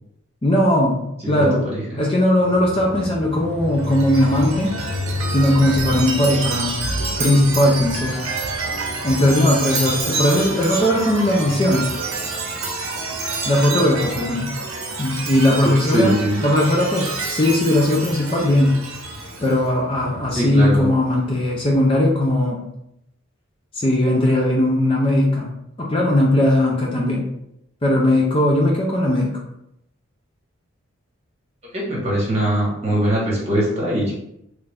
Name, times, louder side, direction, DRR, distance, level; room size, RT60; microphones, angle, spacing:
voice 1, 0.4-1.7 2.0-4.7 5.3-8.2 9.0-11.9 13.5-14.5 15.0-18.8 19.4-22.7 23.7-25.5 25.8-27.3 27.8-29.4, left 1 dB, 25° left, -2 dB, 0.4 m, -18 dB
voice 2, 1.4-2.0 15.6-16.4 20.3-20.8 31.7-34.1, equal, 30° right, -5 dB, 1.2 m, -21 dB
sound 1, 2.4-21.7, left 3 dB, 50° left, 0.7 m, -35 dB
Chime, 3.7-19.6, right 3 dB, 85° right, 0.7 m, -28 dB
3.2 x 2.5 x 3.3 m, 0.80 s
head